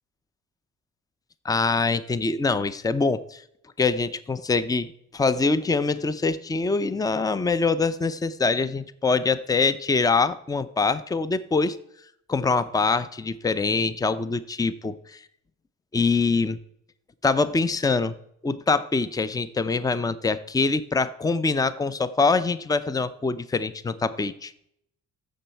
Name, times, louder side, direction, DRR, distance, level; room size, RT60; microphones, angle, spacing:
voice 1, 1.4-3.4 3.8-11.8 12.3-15.0 15.9-16.6 17.2-18.1 18.4-24.5, left 4 dB, 10° left, 15 dB, 0.5 m, -24 dB
14.5 x 6.4 x 4.5 m, 0.73 s
cardioid pair, 90°, 30 cm